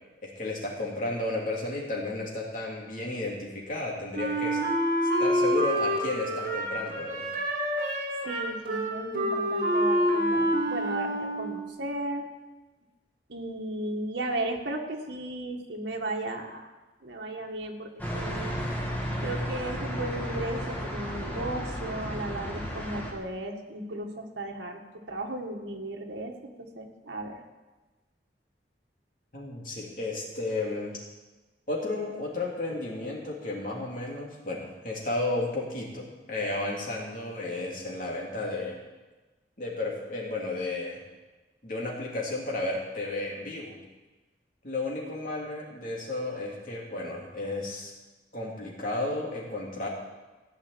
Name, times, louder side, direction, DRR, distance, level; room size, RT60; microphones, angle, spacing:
voice 1, 0.2-4.6 5.2-7.3 29.3-31.0 31.7-38.8 39.6-41.0 41.6-43.8 44.6-47.9 48.3-49.9, left 2 dB, 50° left, -2 dB, 3.0 m, -33 dB
Wind instrument woodwind instrument, 4.1-11.7, equal, 50° right, 2.8 m, -27 dB
voice 2, 8.2-12.3 13.3-16.7 17.0-18.6 19.2-24.8 25.1-27.4, right 1 dB, 90° right, 2 dB, 1.7 m, -35 dB
sound 1, 18.0-23.1, equal, 10° left, 1.8 m, -33 dB
15.0 x 5.7 x 9.3 m, 1.2 s
head